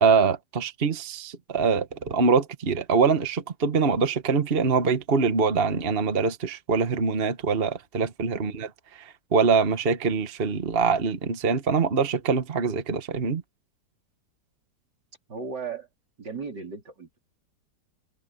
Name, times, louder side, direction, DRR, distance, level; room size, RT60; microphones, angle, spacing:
voice 1, 0.0-13.4, right 5 dB, 35° right, 1.3 m, -24 dB
voice 2, 15.3-15.9 16.2-17.1, right 5 dB, 75° right, 4.5 m, -36 dB
omnidirectional pair, 1.9 m